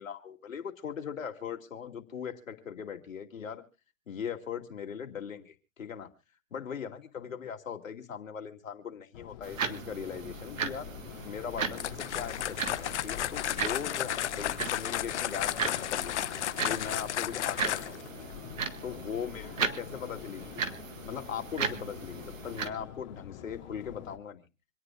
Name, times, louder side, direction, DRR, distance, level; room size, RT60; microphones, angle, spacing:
voice 1, 0.0-3.6 4.1-6.1 6.5-10.9 11.2-16.1 16.6-18.1 18.8-20.6 21.0-24.4, left 7 dB, 85° left, 5 dB, 2.6 m, -39 dB
Subway metro underground, 9.1-24.2, left 11 dB, 35° left, 2.8 m, -46 dB
sound 1, 9.4-22.7, right 6 dB, 80° right, 1.9 m, -37 dB
sound 2, 11.7-18.1, left 11 dB, 60° left, 0.7 m, -33 dB
26.5 x 10.0 x 2.4 m, 0.34 s
hypercardioid pair, 155°, 39 cm